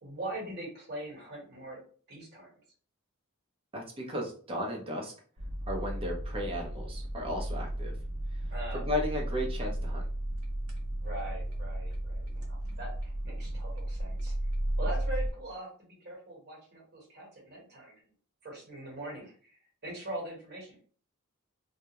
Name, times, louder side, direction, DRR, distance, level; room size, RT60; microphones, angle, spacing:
voice 1, 0.0-1.8 2.1-2.5 8.5-8.9 11.0-14.4 14.8-18.0 18.4-20.8, right 1 dB, 50° right, -2 dB, 1.2 m, -42 dB
voice 2, 3.7-5.1 5.7-7.9 8.7-10.0, equal, 25° right, -1 dB, 0.6 m, -35 dB
sound 1, 5.4-15.3, right 1 dB, 90° right, 0.7 m, -34 dB
2.3 x 2.1 x 2.9 m, 0.43 s
head